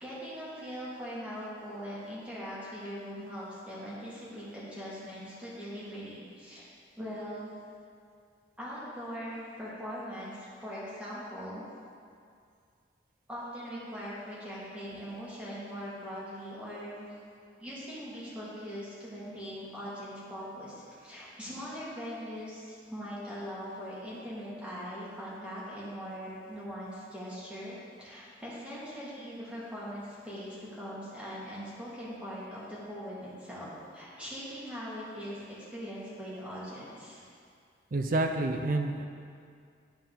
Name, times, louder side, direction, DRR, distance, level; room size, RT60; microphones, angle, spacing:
voice 1, 0.0-6.6 7.0-7.5 8.6-11.6 13.3-17.1 17.6-33.7 33.9-35.4 35.7-37.2, equal, 5° right, -9 dB, 1.9 m, -41 dB
voice 2, 37.9-39.0, right 2 dB, 50° right, 5 dB, 0.5 m, -28 dB
11.5 x 4.3 x 3.8 m, 2.3 s
head